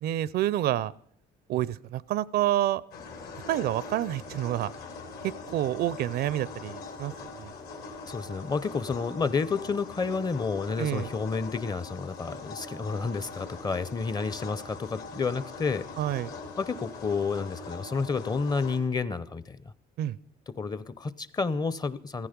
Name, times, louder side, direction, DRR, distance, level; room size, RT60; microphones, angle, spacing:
voice 1, 0.0-0.9 1.5-2.8 3.5-4.7 5.5-7.5 10.8-11.1 16.0-16.3 20.0-20.2, right 13 dB, 70° right, 21 dB, 0.5 m, -28 dB
sound 1, 2.9-18.8, left 3 dB, 70° left, 2.8 m, -42 dB
voice 2, 8.1-15.9 16.6-19.6 20.5-22.3, left 4 dB, 25° left, 17 dB, 0.6 m, -30 dB
15.0 x 15.0 x 5.2 m, 0.64 s
cardioid pair, 110°, 17 cm